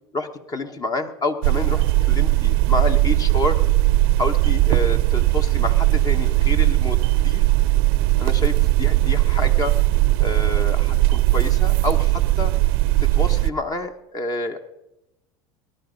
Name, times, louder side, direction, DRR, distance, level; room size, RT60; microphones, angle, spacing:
voice 1, 0.1-3.6 4.2-7.5 8.2-9.7 10.2-12.5 13.0-14.7, left 2 dB, 30° left, 8 dB, 1.4 m, -28 dB
sound 1, 1.4-13.5, right 17 dB, 70° right, 0.6 m, -18 dB
19.0 x 11.0 x 5.3 m, 0.92 s
hypercardioid pair, 95°, 13 cm